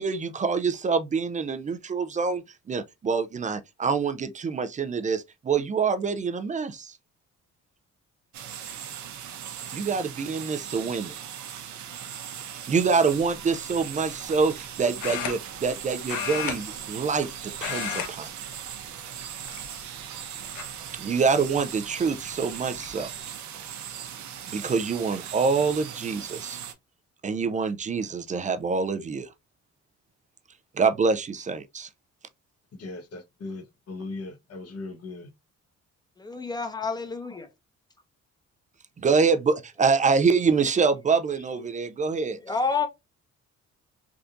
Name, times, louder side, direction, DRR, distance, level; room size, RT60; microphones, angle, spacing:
voice 1, 0.0-7.0 9.7-11.1 12.5-18.3 20.9-23.1 24.5-26.6 27.2-29.3 30.7-31.9 39.0-42.4, right 5 dB, 25° right, 0.4 m, -26 dB
sound 1, 8.3-26.7, right 9 dB, 70° right, 0.8 m, -39 dB
sound 2, 13.1-13.4 15.0-15.8 16.1-17.3 17.5-18.1 18.4-18.7 19.4-20.0 20.6-20.7 22.1-22.2 22.5-22.9, left 9 dB, 75° left, 0.7 m, -33 dB
voice 2, 32.8-35.3, left 3 dB, 55° left, 1.0 m, -38 dB
voice 3, 36.2-37.5 42.4-42.9, left 4 dB, 15° left, 0.8 m, -28 dB
3.5 x 2.6 x 2.4 m
cardioid pair, 90°, 30 cm